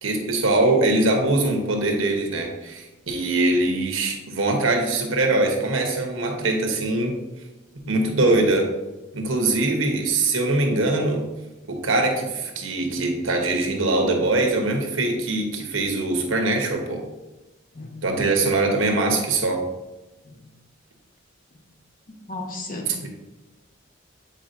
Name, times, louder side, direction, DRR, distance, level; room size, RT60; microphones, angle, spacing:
voice 1, 0.0-7.2 7.9-8.7 9.1-11.2 11.6-17.0 18.0-19.6 22.9-23.1, right 2 dB, 85° right, 3 dB, 1.0 m, -22 dB
voice 2, 22.3-22.9, left 2 dB, 45° left, 2 dB, 0.9 m, -35 dB
7.5 x 4.8 x 2.6 m, 1.1 s
head